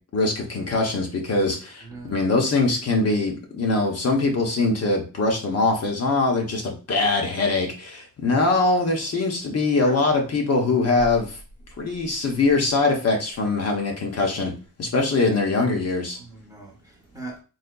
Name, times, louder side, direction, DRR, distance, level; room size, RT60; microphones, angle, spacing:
voice 1, 0.1-11.4 11.8-14.5 14.8-16.2, left 3 dB, 45° left, 1 dB, 0.8 m, -22 dB
voice 2, 9.7-10.1 16.2-17.4, right 3 dB, 10° right, -1 dB, 0.7 m, -40 dB
4.0 x 2.8 x 2.2 m, 0.36 s
wide cardioid pair, 145°, 35 cm